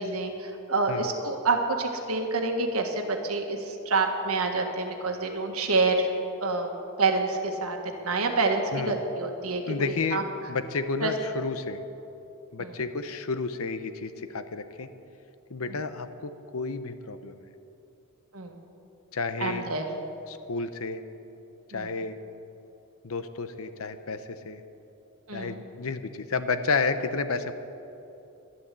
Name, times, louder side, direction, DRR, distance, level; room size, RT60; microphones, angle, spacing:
voice 1, 0.0-6.1 6.4-7.8 8.0-10.2 11.0-11.1 12.6-12.8 15.6-15.8 18.3-18.6 19.4-19.9 21.7-21.9 25.3-25.6, right 3 dB, 80° right, 4 dB, 1.5 m, -27 dB
voice 2, 9.7-10.2 10.5-11.8 12.5-14.9 15.5-17.5 19.1-19.7 20.3-21.0 21.7-22.2 23.0-24.6 25.3-27.5, left 4 dB, 70° left, 11 dB, 0.8 m, -31 dB
11.5 x 11.5 x 7.5 m, 3.0 s
head